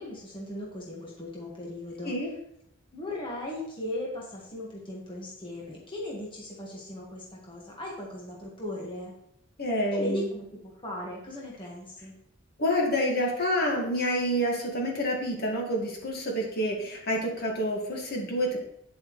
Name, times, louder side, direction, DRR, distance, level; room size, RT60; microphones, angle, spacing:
voice 1, 0.0-2.1 2.9-9.1 9.9-12.1, left 1 dB, 25° left, -3 dB, 1.6 m, -37 dB
voice 2, 9.6-10.3 12.6-18.6, equal, 50° left, 0 dB, 1.9 m, -28 dB
9.4 x 7.6 x 3.2 m, 0.74 s
head